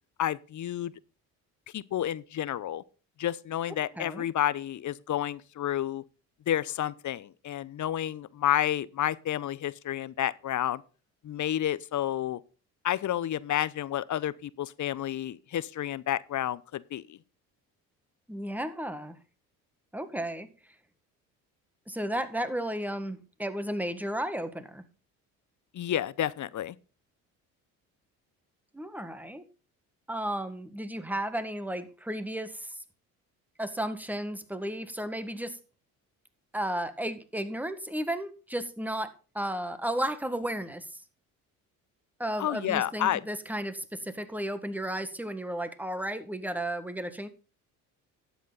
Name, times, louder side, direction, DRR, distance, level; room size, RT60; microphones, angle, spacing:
voice 1, 0.2-0.9 1.7-2.8 3.2-6.0 6.5-10.8 11.2-12.4 12.8-17.2 25.7-26.8 42.4-43.2, left 11 dB, 45° left, 0.7 m, -30 dB
voice 2, 3.9-4.3 18.3-19.2 19.9-20.5 21.9-24.8 28.7-29.4 30.1-32.8 33.6-35.6 36.5-41.0 42.2-47.3, right 1 dB, 5° right, 1.6 m, -33 dB
12.0 x 8.3 x 4.0 m
hypercardioid pair, 60°, 41 cm